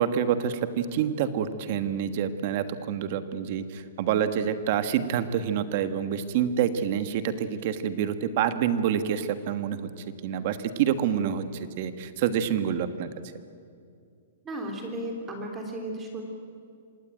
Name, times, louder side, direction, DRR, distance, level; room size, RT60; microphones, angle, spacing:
voice 1, 0.0-13.1, right 9 dB, 40° right, 11 dB, 1.5 m, -27 dB
voice 2, 14.4-16.2, right 1 dB, 15° right, 2 dB, 3.2 m, -34 dB
26.0 x 18.0 x 9.1 m, 2.4 s
hypercardioid pair, 170°, 0 cm